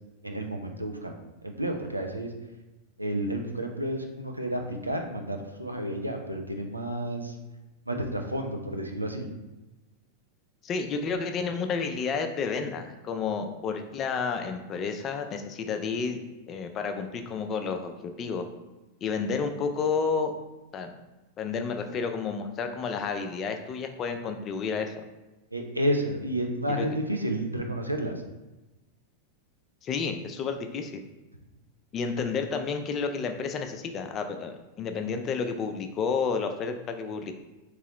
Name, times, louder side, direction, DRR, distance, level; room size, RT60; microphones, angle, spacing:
voice 1, 0.2-1.1 1.4-2.3 3.0-7.4 7.9-9.3 25.5-28.1, right 1 dB, 85° right, 3 dB, 0.4 m, -31 dB
voice 2, 10.6-16.2 16.5-18.5 19.0-20.3 20.7-20.9 21.4-24.9 26.7-26.9 29.8-31.0 31.9-37.3, left 5 dB, 30° left, 6 dB, 0.4 m, -31 dB
3.7 x 3.0 x 2.9 m, 1.1 s
figure-of-eight pair, 90°, 0 cm